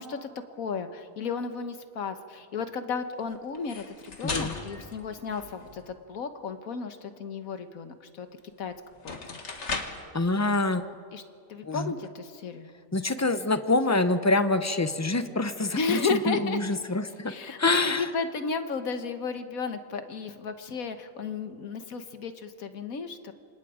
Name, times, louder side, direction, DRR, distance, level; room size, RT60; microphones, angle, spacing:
voice 1, 0.0-8.3 8.6-8.7 9.0-9.4 10.7-10.8 11.1-11.2 11.5-12.7 15.7-16.6 17.3-23.3, left 4 dB, 75° left, 9 dB, 1.6 m, -33 dB
sound 1, 3.5-5.9 8.4-8.5 8.9-10.1, left 3 dB, 50° left, 2.1 m, -37 dB
voice 2, 4.2-4.5 10.1-10.8 11.6-11.9 12.9-17.3 17.6-18.1, left 2 dB, 15° left, 10 dB, 0.6 m, -26 dB
28.0 x 26.5 x 5.0 m, 2.3 s
omnidirectional pair, 1.5 m